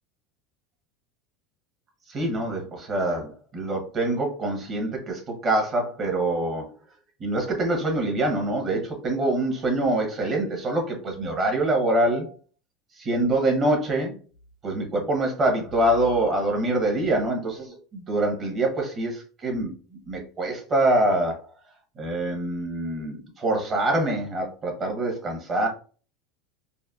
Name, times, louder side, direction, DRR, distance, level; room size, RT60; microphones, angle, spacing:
voice 1, 2.1-6.6 7.2-12.3 13.0-14.1 14.6-19.7 20.1-21.4 22.0-25.7, right 1 dB, 30° right, 2 dB, 1.1 m, -25 dB
4.0 x 2.2 x 2.4 m, 0.38 s
supercardioid pair, 140°, 0 cm